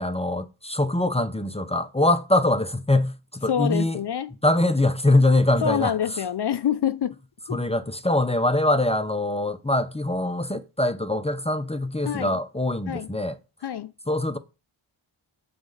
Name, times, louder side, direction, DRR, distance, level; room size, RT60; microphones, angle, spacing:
voice 1, 0.0-4.0 4.4-5.9 7.5-13.4 14.1-14.4, left 1 dB, 10° left, 0.6 m, -23 dB
voice 2, 3.5-4.3 5.6-7.2 7.5-7.6 12.1-12.3 12.9-13.1 13.6-13.9, left 9 dB, 55° left, 0.5 m, -26 dB
6.3 x 4.2 x 6.5 m
cardioid pair, 50°, 50 cm